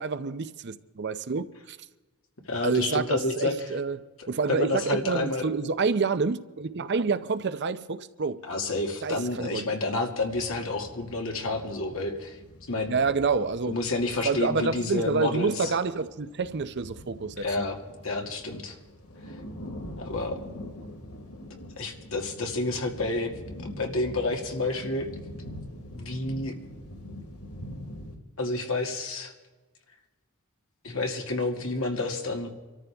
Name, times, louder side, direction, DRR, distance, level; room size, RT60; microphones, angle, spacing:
voice 1, 0.0-1.8 2.6-4.0 4.3-8.4 9.0-9.6 12.9-13.7 14.2-17.5, right 4 dB, 50° right, 0.6 m, -28 dB
voice 2, 2.5-3.7 4.2-5.4 8.5-12.4 12.7-13.0 13.7-15.7 17.4-17.8 18.0-18.8 20.0-20.4 21.8-23.3 23.6-25.1 25.9-26.6 28.4-29.3 30.8-32.5, left 2 dB, 65° left, 2.1 m, -29 dB
sound 1, 10.2-28.2, left 1 dB, 85° left, 2.5 m, -44 dB
25.0 x 13.5 x 3.5 m
head